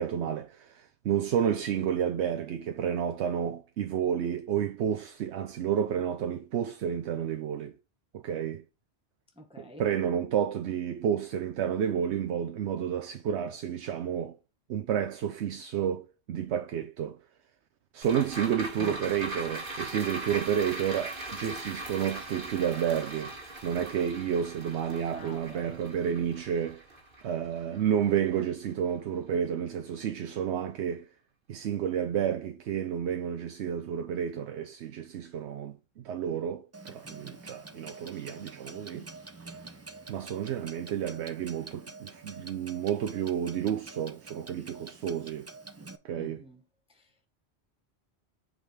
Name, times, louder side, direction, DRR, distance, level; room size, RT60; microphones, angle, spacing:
voice 1, 0.0-7.8 8.1-8.6 9.6-14.4 14.7-17.2 17.9-23.3 23.6-26.8 27.2-31.1 31.5-39.1 40.1-45.5 46.0-46.4, right 9 dB, 80° right, 0.9 m, -30 dB
voice 2, 9.3-9.9 18.8-19.1 25.1-25.8 46.1-46.6 46.9-47.3, equal, 5° right, 0.8 m, -47 dB
sound 1, 18.0-28.5 28.9-29.0, right 2 dB, 55° right, 1.6 m, -40 dB
Clock, 36.7-46.0, right 3 dB, 20° right, 0.4 m, -47 dB
8.2 x 3.9 x 3.3 m
omnidirectional pair, 1.1 m